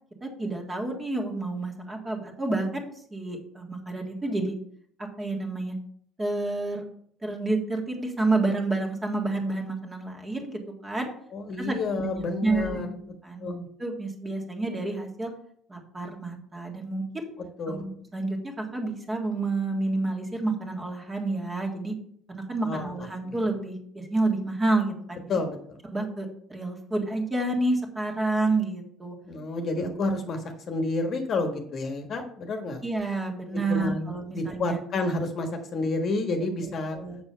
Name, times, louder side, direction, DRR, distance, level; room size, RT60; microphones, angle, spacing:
voice 1, 0.2-4.5 5.0-5.8 6.2-6.9 7.2-11.1 11.6-12.9 13.2-13.5 13.8-15.3 15.7-17.3 17.7-21.9 22.3-25.4 25.9-29.2 29.8-29.9 32.8-34.8 36.6-37.2, right 2 dB, 15° right, 1 dB, 1.7 m, -29 dB
voice 2, 11.3-12.9 13.4-13.7 17.6-17.9 22.6-22.9 23.3-23.4 25.3-25.8 29.2-30.4 30.7-32.8 33.7-37.0, left 2 dB, 40° left, 5 dB, 1.3 m, -29 dB
7.0 x 6.7 x 5.6 m, 0.64 s
cardioid pair, 140°, 0 cm